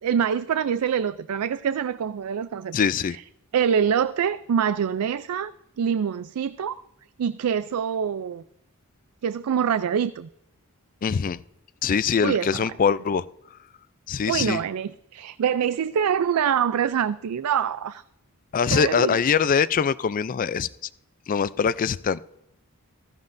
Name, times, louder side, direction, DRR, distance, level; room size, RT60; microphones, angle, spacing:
voice 1, 0.0-2.8 3.1-3.2 3.5-6.8 7.2-8.4 9.2-10.3 12.2-12.7 14.3-18.0 18.7-19.2, right 8 dB, 80° right, 14 dB, 0.4 m, -25 dB
voice 2, 2.7-3.2 11.0-11.4 11.8-13.3 14.1-14.6 18.5-20.7 21.3-22.2, left 6 dB, 40° left, 17 dB, 0.3 m, -23 dB
15.0 x 15.0 x 2.6 m, 0.83 s
head